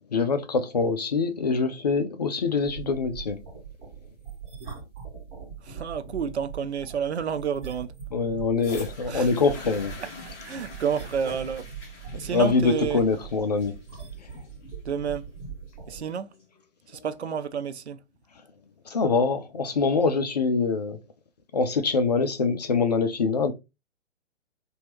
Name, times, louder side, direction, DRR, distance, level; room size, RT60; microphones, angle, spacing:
voice 1, 0.1-3.5 8.1-9.9 12.1-13.8 18.9-21.0 21.5-23.5, left 4 dB, 35° left, 0.4 m, -24 dB
sound 1, 2.6-16.0, right 7 dB, 30° right, 1.1 m, -41 dB
voice 2, 5.6-7.9 9.1-9.3 10.0-10.1 10.5-11.6 12.2-13.0 14.8-15.3 15.9-16.3 16.9-18.0, right 7 dB, 65° right, 0.5 m, -30 dB
sound 2, 8.6-16.6 17.4-17.5, left 3 dB, 15° left, 0.9 m, -46 dB
2.8 x 2.3 x 3.0 m
figure-of-eight pair, 125°, 35 cm